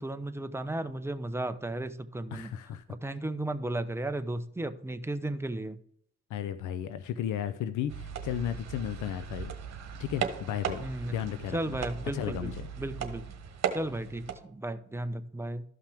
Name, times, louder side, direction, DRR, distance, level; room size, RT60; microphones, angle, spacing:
voice 1, 0.0-2.5 2.9-5.8 10.8-11.2 11.5-13.2 13.7-15.6, right 1 dB, 10° right, 10 dB, 0.7 m, -34 dB
voice 2, 2.3-2.8 6.3-9.6 10.0-11.8 12.1-12.6, left 10 dB, 80° left, 11 dB, 0.6 m, -34 dB
sound 1, 7.9-14.4, right 7 dB, 60° right, 1.4 m, -37 dB
13.0 x 5.8 x 3.5 m, 0.67 s
cardioid pair, 90°, 30 cm